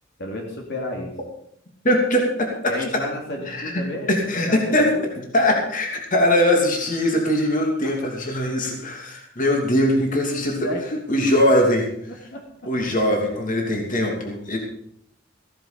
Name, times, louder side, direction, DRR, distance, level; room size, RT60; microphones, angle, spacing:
voice 1, 0.2-1.1 2.7-5.1 10.3-11.7 12.3-12.4, left 1 dB, 60° left, 0 dB, 2.8 m, -32 dB
voice 2, 1.8-2.5 3.5-4.9 5.3-10.7 11.1-11.9 12.7-14.6, left 1 dB, 45° left, 1 dB, 2.9 m, -21 dB
15.5 x 10.5 x 5.2 m, 0.70 s
head